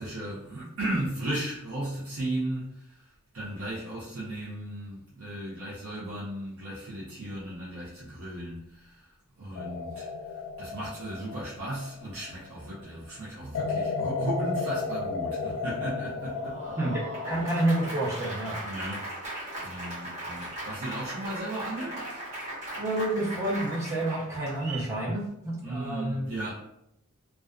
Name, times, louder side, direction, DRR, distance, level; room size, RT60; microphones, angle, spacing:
voice 1, 0.0-16.8 18.6-19.1 19.6-22.1 25.6-26.7, right 1 dB, 60° right, -8 dB, 0.6 m, -36 dB
sound 1, 9.5-12.6 13.5-17.8, left 4 dB, 75° left, 0.3 m, -34 dB
Applause, 16.2-24.9, right 1 dB, 30° right, 1.1 m, -38 dB
voice 2, 16.8-18.6 22.7-26.2, right 1 dB, 15° right, -5 dB, 0.6 m, -29 dB
2.4 x 2.2 x 2.3 m, 0.79 s
head